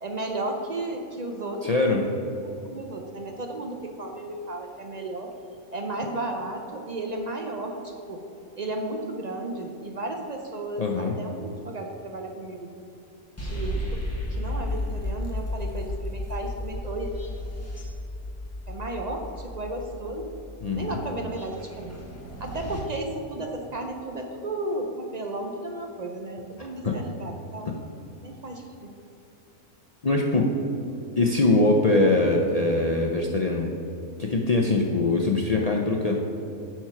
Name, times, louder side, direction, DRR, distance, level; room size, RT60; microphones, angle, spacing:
voice 1, 0.0-2.2 2.4-5.3 5.7-8.2 8.6-12.7 13.4-14.0 14.3-17.1 18.7-20.3 20.7-22.1 22.4-27.7 28.2-28.9, right 2 dB, 60° right, 3 dB, 0.4 m, -34 dB
voice 2, 1.6-2.0 10.8-11.1 20.6-21.0 26.6-26.9 30.0-30.5 31.2-33.7 34.2-36.2, left 2 dB, 75° left, -1 dB, 0.3 m, -22 dB
sound 1, 13.4-22.8, left 1 dB, 10° left, 1.2 m, -33 dB
9.2 x 4.5 x 5.8 m, 2.8 s
omnidirectional pair, 1.5 m